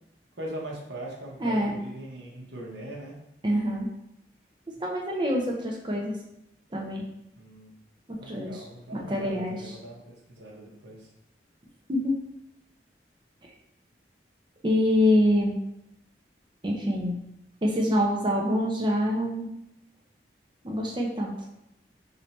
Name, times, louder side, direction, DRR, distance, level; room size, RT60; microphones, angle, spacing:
voice 1, 0.4-3.2 7.4-7.7 8.2-11.1, right 1 dB, 80° right, -2 dB, 1.0 m, -40 dB
voice 2, 1.4-1.8 3.4-3.9 4.8-6.1 6.7-7.0 8.1-8.6 8.9-9.8 11.9-12.2 14.6-15.6 16.6-17.2 17.6-19.5 20.6-21.3, left 1 dB, 25° right, -1 dB, 0.6 m, -25 dB
3.3 x 2.7 x 4.1 m, 0.83 s
head